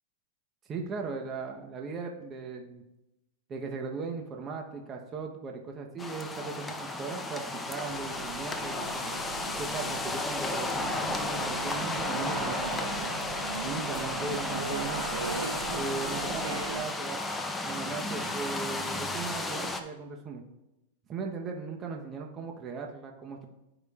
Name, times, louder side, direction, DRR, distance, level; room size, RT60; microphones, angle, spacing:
voice 1, 0.7-2.8 3.5-9.1 9.6-12.9 13.6-15.1 15.7-17.2 17.6-20.4 21.1-23.5, right 4 dB, 30° right, 2 dB, 0.9 m, -38 dB
sound 1, 6.0-19.8, left 2 dB, 10° left, 0.7 m, -33 dB
sound 2, 7.8-16.8, right 6 dB, 90° right, 0.4 m, -39 dB
13.5 x 5.1 x 2.4 m, 0.94 s
hypercardioid pair, 115°, 0 cm